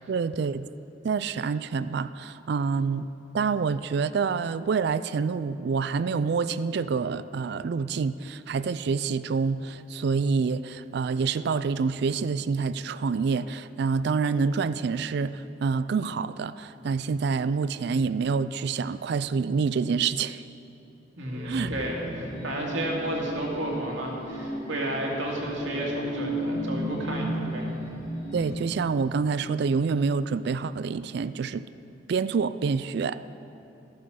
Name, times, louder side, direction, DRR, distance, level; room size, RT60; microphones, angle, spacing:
voice 1, 0.1-0.7 1.0-3.1 3.3-20.4 21.4-21.7 28.3-31.7 32.1-33.3, right 5 dB, 60° right, 14 dB, 0.3 m, -27 dB
sound 1, 21.2-28.5, right 1 dB, 55° left, 3.1 m, -34 dB
voice 2, 21.2-27.7, right 1 dB, 90° right, -1 dB, 2.3 m, -32 dB
13.5 x 9.4 x 6.3 m, 2.9 s
head